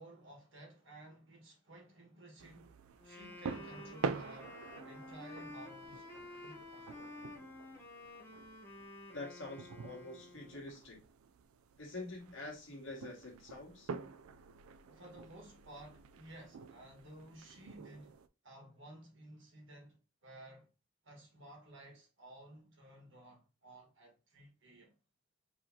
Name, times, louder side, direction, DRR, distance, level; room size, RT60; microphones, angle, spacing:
voice 1, 0.0-2.8 3.0-4.6 4.8-7.1 14.9-18.2 18.4-20.7 21.0-24.9, right 1 dB, 60° right, 1.5 m, -55 dB
sound 1, 2.4-18.3, right 5 dB, 85° right, 0.3 m, -47 dB
Wind instrument woodwind instrument, 3.0-10.7, left 2 dB, 10° left, 0.7 m, -51 dB
voice 2, 9.1-11.0 11.8-13.9, left 2 dB, 65° left, 1.8 m, -46 dB
4.7 x 3.1 x 2.7 m
head